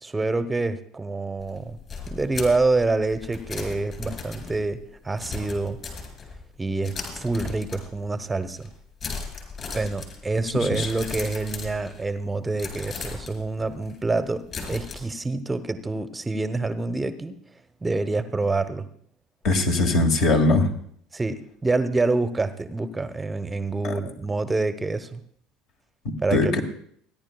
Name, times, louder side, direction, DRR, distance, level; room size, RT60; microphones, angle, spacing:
voice 1, 0.0-1.8 2.1-5.8 6.6-8.7 9.7-17.4 17.8-18.9 21.1-25.2 26.2-26.6, right 3 dB, 15° right, 11 dB, 0.8 m, -27 dB
sound 1, 1.4-6.5 6.8-8.2 8.5-8.7 9.0-12.2 12.6-15.0, left 4 dB, 40° left, 4.3 m, -37 dB
voice 2, 19.4-20.7 23.8-23.9 26.3-26.6, left 2 dB, 60° left, 3 dB, 1.9 m, -21 dB
28.5 x 10.5 x 2.3 m, 0.63 s
figure-of-eight pair, 65°, 0 cm